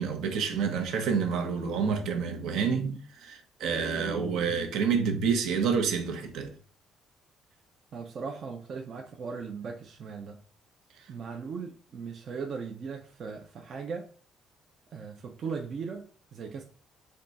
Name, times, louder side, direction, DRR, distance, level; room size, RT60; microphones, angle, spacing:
voice 1, 0.0-6.5, right 6 dB, 70° right, 0.8 m, -28 dB
voice 2, 7.9-10.4 11.1-14.1 14.9-16.6, right 5 dB, 40° right, 0.4 m, -38 dB
3.7 x 2.2 x 3.9 m
cardioid pair, 170°, 0 cm